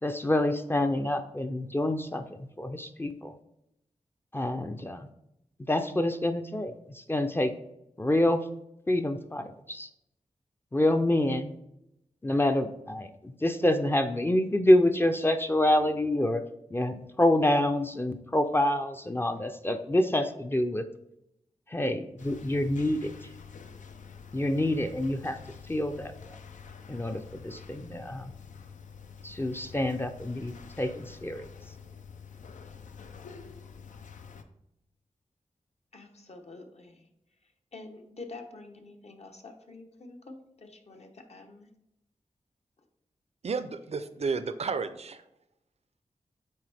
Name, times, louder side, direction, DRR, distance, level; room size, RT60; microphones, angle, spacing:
voice 1, 0.0-3.3 4.3-5.1 5.6-7.5 8.0-8.4 8.9-9.9 10.7-11.5 12.2-16.4 16.7-20.9 21.7-23.1 24.3-25.4 25.7-26.4 26.9-28.3 29.2-31.5, left 1 dB, 15° left, 7 dB, 0.4 m, -27 dB
sound 1, 22.2-34.4, left 6 dB, 85° left, 0.5 m, -47 dB
voice 2, 35.9-37.1 37.7-41.7, left 3 dB, 60° left, 4 dB, 0.9 m, -47 dB
voice 3, 43.4-45.2, right 4 dB, 55° right, 12 dB, 0.5 m, -32 dB
8.6 x 3.4 x 3.4 m, 0.82 s
wide cardioid pair, 75°, 13 cm